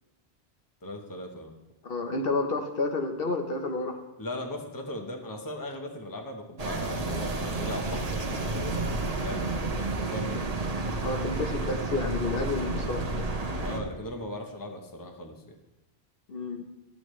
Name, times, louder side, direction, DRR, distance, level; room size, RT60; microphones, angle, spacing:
voice 1, 0.8-1.5 4.2-9.5 10.0-10.5 13.6-15.6, left 1 dB, 20° left, 3 dB, 0.9 m, -38 dB
voice 2, 1.8-4.0 11.0-13.0 16.3-16.6, left 3 dB, 60° left, 4 dB, 1.0 m, -30 dB
sound 1, 6.6-13.8, right 2 dB, 40° right, 0.9 m, -31 dB
13.0 x 8.4 x 3.2 m, 0.97 s
omnidirectional pair, 1.1 m